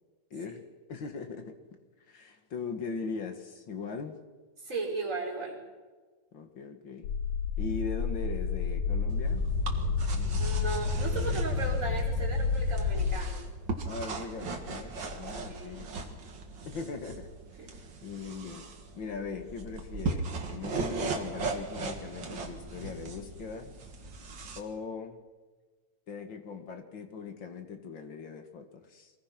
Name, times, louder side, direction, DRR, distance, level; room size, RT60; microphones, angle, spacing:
voice 1, 0.3-1.5 2.1-4.2 6.3-7.1 7.6-9.4 9.7-10.4 13.9-16.2 16.7-17.3 18.0-18.7 19.0-23.7 24.6-25.2 26.1-29.1, left 5 dB, 45° left, 7 dB, 2.0 m, -40 dB
voice 2, 4.6-5.6 10.4-13.4 15.5-15.7 17.6-17.7, right 3 dB, 20° right, -1 dB, 5.3 m, -36 dB
sound 1, 7.0-13.2, left 4 dB, 70° left, 3.6 m, -29 dB
sound 2, 9.1-24.6, right 3 dB, 40° right, 2.2 m, -38 dB
23.5 x 20.0 x 6.0 m, 1.3 s
omnidirectional pair, 3.7 m